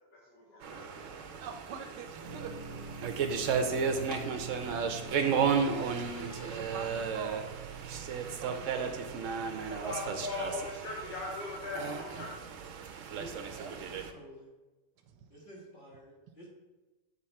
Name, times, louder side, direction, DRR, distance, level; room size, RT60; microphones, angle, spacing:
voice 1, 0.1-0.8 9.6-12.3, left 2 dB, 70° left, -5 dB, 1.8 m, -39 dB
sound 1, 0.6-14.1, right 6 dB, 65° right, 0.8 m, -34 dB
voice 2, 1.4-2.5 3.0-3.1 4.6-5.0 6.2-7.5 7.8-8.1 8.4-9.1 13.6-13.7 15.1-15.2, right 7 dB, 85° right, 5 dB, 1.2 m, -45 dB
sound 2, 2.2-13.8, right 5 dB, 40° right, 0.9 m, -48 dB
sound 3, 2.4-7.9, left 2 dB, 55° left, 1.2 m, -52 dB
voice 3, 13.1-14.5 15.3-16.5, equal, 30° left, -5 dB, 1.7 m, -50 dB
7.7 x 4.1 x 4.3 m, 1.1 s
omnidirectional pair, 1.8 m